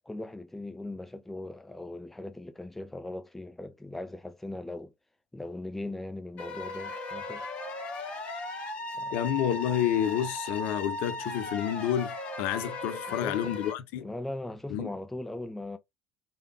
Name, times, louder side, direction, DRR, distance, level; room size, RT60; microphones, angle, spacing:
voice 1, 0.0-4.9 5.3-7.5 9.0-9.1 13.1-13.6 14.0-15.8, left 2 dB, 5° left, 0.5 m, -39 dB
sound 1, 6.4-13.7, left 2 dB, 45° left, 1.0 m, -37 dB
voice 2, 9.1-14.1 14.7-14.9, left 10 dB, 60° left, 0.6 m, -29 dB
3.3 x 2.3 x 2.9 m
figure-of-eight pair, 60°, 3 cm